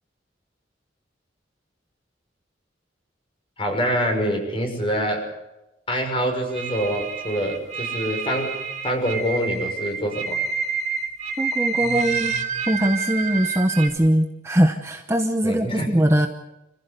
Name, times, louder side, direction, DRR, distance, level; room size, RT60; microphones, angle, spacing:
voice 1, 3.6-5.2 5.9-8.5 8.8-10.4 15.4-15.9, equal, 30° left, 3 dB, 6.1 m, -25 dB
sound 1, 6.5-13.9, right 5 dB, 40° right, 2.5 m, -28 dB
voice 2, 11.4-12.3 12.7-16.3, right 1 dB, 15° right, 5 dB, 1.0 m, -21 dB
26.5 x 15.5 x 8.1 m, 0.96 s
head